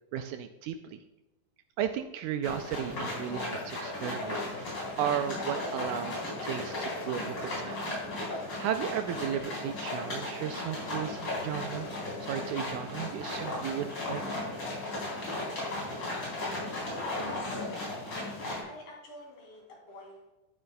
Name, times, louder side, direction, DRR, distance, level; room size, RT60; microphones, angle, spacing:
voice 1, 0.1-1.0 1.8-7.8 8.6-11.9 12.2-14.2, right 9 dB, 80° right, 8 dB, 1.8 m, -35 dB
sound 1, 2.4-18.6, left 2 dB, 40° left, 4.6 m, -36 dB
voice 2, 16.6-17.9 18.6-20.3, left 2 dB, 85° left, -3 dB, 4.8 m, -48 dB
12.0 x 10.5 x 2.3 m, 1.0 s
omnidirectional pair, 3.8 m